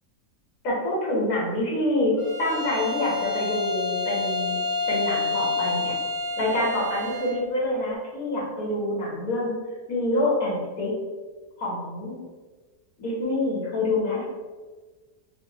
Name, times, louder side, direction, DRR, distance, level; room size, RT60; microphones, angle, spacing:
voice 1, 0.6-2.1 2.4-4.5 4.9-5.9 6.4-9.5 9.9-10.9 11.6-12.2 13.0-14.2, left 1 dB, 65° left, -5 dB, 1.6 m, -26 dB
Bowed string instrument, 2.2-7.4, left 4 dB, 45° left, 0.9 m, -28 dB
5.6 x 2.0 x 2.7 m, 1.3 s
omnidirectional pair, 1.6 m